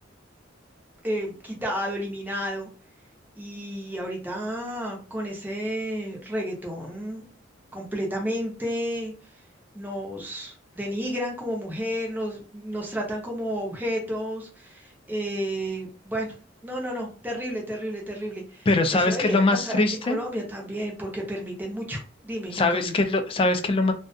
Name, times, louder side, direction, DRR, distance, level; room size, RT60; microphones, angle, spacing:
voice 1, 1.0-2.7 3.4-7.2 7.7-9.1 9.7-16.3 16.6-23.0, equal, 10° right, 0.6 m, -31 dB
voice 2, 18.7-20.2 22.5-23.9, left 2 dB, 30° left, 0.3 m, -22 dB
2.4 x 2.2 x 2.6 m
head